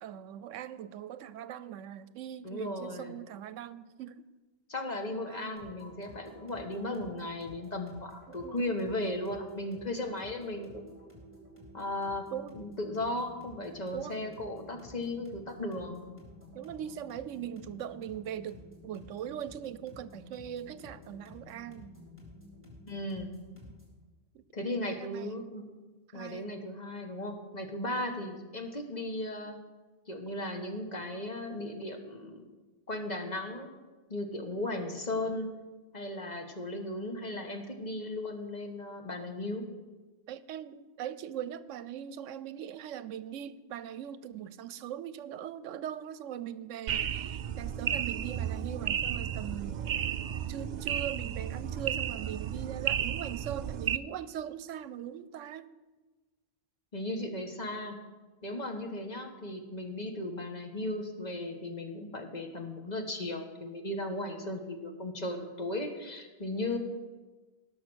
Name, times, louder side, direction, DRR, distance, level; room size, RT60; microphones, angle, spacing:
voice 1, 0.0-4.2 5.2-5.6 8.3-8.7 12.3-12.6 13.9-14.2 16.5-21.9 24.3-25.5 26.1-26.5 40.3-49.8 50.5-55.7, right 10 dB, 85° right, 16 dB, 1.0 m, -41 dB
voice 2, 2.4-3.1 4.7-10.9 11.7-12.3 12.5-16.1 22.9-23.3 24.5-25.6 26.1-29.6 30.1-32.4 32.9-33.7 34.1-35.5 35.9-39.7 56.9-58.0 58.4-66.8, left 1 dB, 35° left, 4 dB, 1.4 m, -36 dB
sound 1, 5.6-24.0, left 1 dB, 10° right, 3.3 m, -52 dB
sound 2, 46.9-54.0, right 9 dB, 65° right, 0.4 m, -33 dB
17.5 x 6.4 x 6.2 m, 1.2 s
omnidirectional pair, 1.3 m